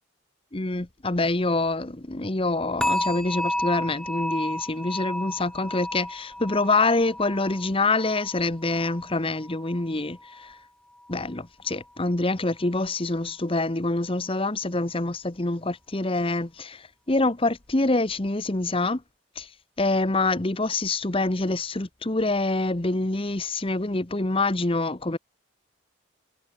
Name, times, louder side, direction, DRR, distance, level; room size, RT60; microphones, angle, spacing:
voice 1, 0.5-10.5 11.1-19.0 19.4-19.5 19.8-25.2, left 2 dB, 25° left, 1.0 m, -26 dB
sound 1, 2.8-9.9 10.2-10.6 11.1-11.2, left 1 dB, 5° left, 2.7 m, -32 dB
head